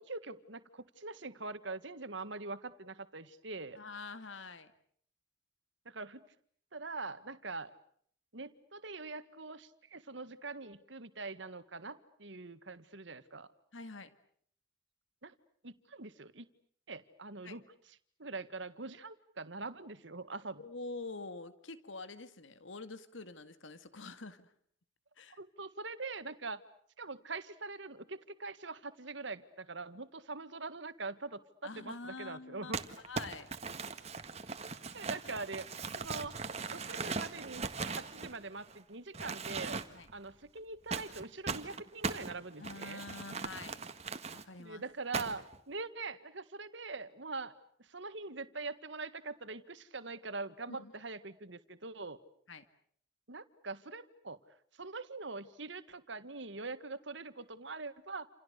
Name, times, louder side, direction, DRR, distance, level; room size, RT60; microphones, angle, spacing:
voice 1, 0.0-3.8 5.9-6.2 6.7-7.7 8.3-13.5 15.2-15.3 15.6-16.5 16.9-17.6 18.2-20.6 25.4-26.6 27.0-32.8 34.9-35.7 36.0-36.4 36.7-39.8 40.1-43.0 44.6-47.5 47.9-52.2 53.3-54.4 54.8-58.3, right 3 dB, 65° right, 12 dB, 1.8 m, -43 dB
voice 2, 3.8-4.7 13.7-14.1 17.4-17.6 20.6-24.5 25.2-25.4 31.6-32.8 33.1-33.5 39.9-40.1 42.6-43.8 44.2-44.8 50.7-50.9 52.5-52.6, left 3 dB, 80° left, 11 dB, 2.0 m, -46 dB
Crumpling crinkling, 32.7-38.8 39.1-40.1 40.9-44.4 45.1-45.6, right 4 dB, 35° right, 1.7 m, -39 dB
29.0 x 28.5 x 6.7 m, 0.62 s
head